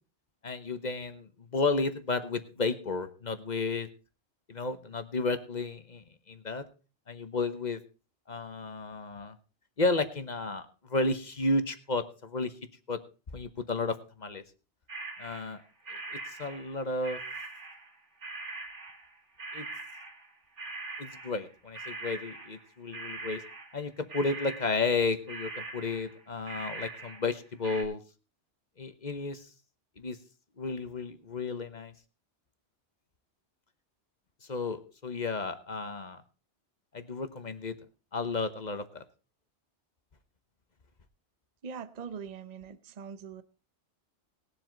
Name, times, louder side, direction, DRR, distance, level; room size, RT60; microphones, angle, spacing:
voice 1, 0.4-3.9 4.5-6.6 7.1-7.8 8.3-9.4 9.8-12.5 12.9-13.0 13.3-14.4 15.2-15.6 16.1-17.2 19.5-19.7 21.0-23.4 23.7-28.0 28.8-29.5 30.0-30.2 30.6-31.9 34.5-36.2 36.9-37.7 38.1-39.0, left 3 dB, 40° left, 1.1 m, -32 dB
sound 1, 14.9-15.6 15.8-18.0 18.2-27.4 27.6-27.8, right 3 dB, 85° right, 2.5 m, -42 dB
voice 2, 41.6-43.4, right 6 dB, 40° right, 0.8 m, -42 dB
19.5 x 7.6 x 3.9 m
omnidirectional pair, 1.2 m